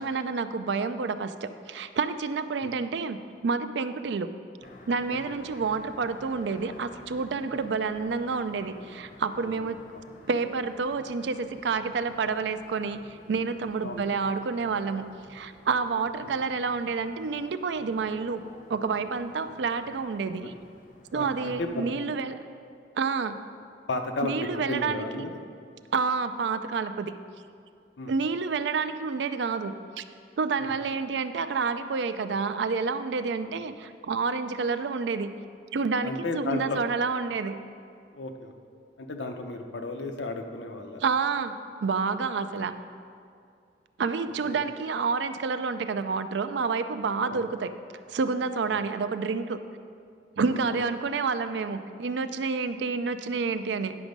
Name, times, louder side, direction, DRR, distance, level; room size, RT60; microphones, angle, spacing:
voice 1, 0.0-4.3 4.9-9.8 10.3-15.0 15.3-18.4 18.7-20.5 21.1-22.4 23.0-23.4 24.2-25.3 25.9-27.1 28.1-30.0 30.4-35.3 35.7-37.6 41.0-41.5 41.8-42.7 44.0-47.7 48.1-49.6 50.4-53.9, right 4 dB, 70° right, 11 dB, 0.4 m, -29 dB
sound 1, 4.6-22.0, left 2 dB, 50° left, 0.8 m, -53 dB
voice 2, 21.1-21.9 23.9-25.4 28.0-28.1 30.6-30.7 36.0-36.8 38.1-38.5 39.0-41.0 44.4-44.6 47.3-47.4 48.7-48.8 50.5-50.6, left 2 dB, 85° left, 5 dB, 0.7 m, -34 dB
9.7 x 6.1 x 5.2 m, 2.4 s
head